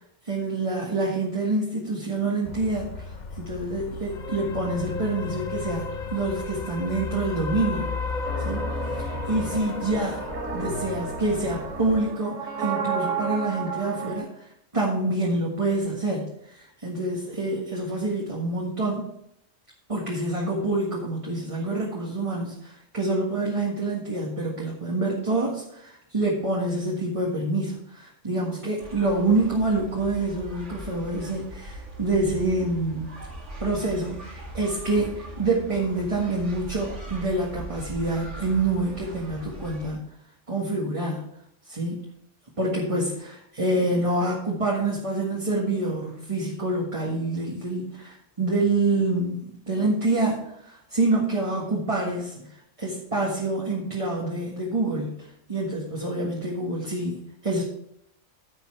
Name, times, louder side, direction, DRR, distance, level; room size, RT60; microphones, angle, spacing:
voice 1, 0.2-10.2 10.5-19.1 19.9-33.2 33.6-40.1 40.5-41.2 41.7-42.1 42.6-57.6, right 2 dB, 25° right, -3 dB, 1.7 m, -27 dB
sound 1, 2.4-12.0, left 4 dB, 45° left, 0.7 m, -34 dB
sound 2, 8.2-14.2, right 5 dB, 85° right, 1.8 m, -32 dB
sound 3, 28.8-39.9, right 1 dB, 65° right, 2.2 m, -40 dB
14.5 x 5.6 x 4.5 m, 0.76 s
omnidirectional pair, 1.3 m